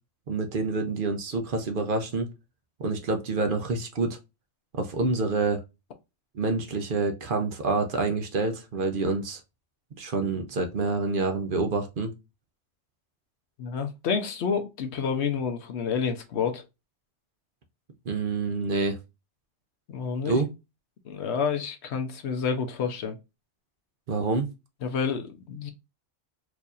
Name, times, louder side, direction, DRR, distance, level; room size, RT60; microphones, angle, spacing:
voice 1, 0.3-2.3 2.8-4.2 4.7-5.6 6.3-9.4 10.0-12.1 18.1-19.0 20.3-20.5 24.1-24.5, right 3 dB, 55° right, 0.8 m, -27 dB
voice 2, 13.6-16.6 19.9-20.3 21.0-23.2 24.8-25.7, left 6 dB, 75° left, 1.0 m, -29 dB
4.7 x 2.7 x 2.4 m
omnidirectional pair, 1.2 m